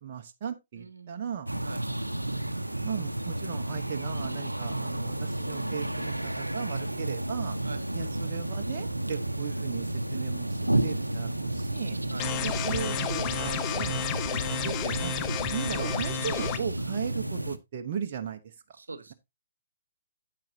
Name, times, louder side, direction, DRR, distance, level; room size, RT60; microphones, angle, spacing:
voice 1, 0.0-1.5 2.8-7.6 7.9-12.0 12.4-13.9 14.3-15.1 15.5-18.5, right 8 dB, 40° right, 1.1 m, -37 dB
voice 2, 0.8-2.0 7.6-8.0 11.3-12.4 18.7-19.1, right 3 dB, 75° right, 1.2 m, -45 dB
sound 1, 1.5-17.6, right 1 dB, 90° right, 0.8 m, -32 dB
sound 2, 12.2-16.6, left 10 dB, 25° left, 0.7 m, -32 dB
9.0 x 8.6 x 2.8 m
figure-of-eight pair, 125°, 0 cm